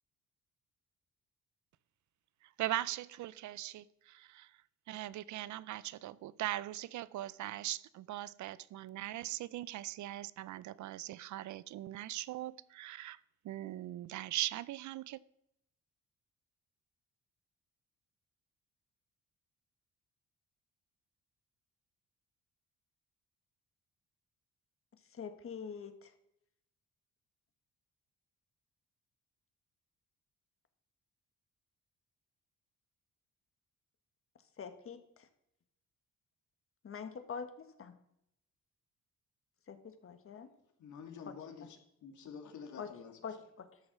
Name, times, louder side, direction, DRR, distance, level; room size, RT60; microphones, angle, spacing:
voice 1, 2.4-4.6 4.9-13.2 13.4-15.2, right 15 dB, 70° right, 0.5 m, -40 dB
voice 2, 25.0-26.1 34.3-35.3 36.8-37.9 39.7-40.5 41.2-41.7 42.8-42.9 43.2-43.8, left 6 dB, 45° left, 1.5 m, -45 dB
voice 3, 40.8-41.8 42.0-43.1, left 6 dB, 75° left, 2.1 m, -48 dB
13.0 x 6.4 x 6.1 m
cardioid pair, 90°, 30 cm